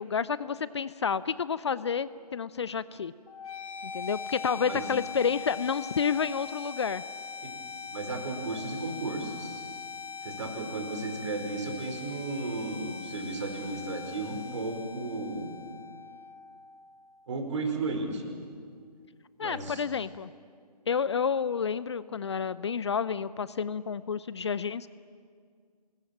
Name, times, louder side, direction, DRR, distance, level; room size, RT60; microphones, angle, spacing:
voice 1, 0.0-3.1 3.8-7.0 19.4-20.3 20.9-24.9, left 6 dB, 40° left, 17 dB, 0.6 m, -30 dB
sound 1, 3.3-17.2, left 5 dB, 60° left, 4.5 m, -41 dB
voice 2, 4.5-4.9 7.4-7.6 7.9-9.6 10.2-15.6 17.3-18.2 19.4-19.8, right 3 dB, 45° right, 5 dB, 5.0 m, -34 dB
26.5 x 21.0 x 9.0 m, 2.1 s
figure-of-eight pair, 145°, 21 cm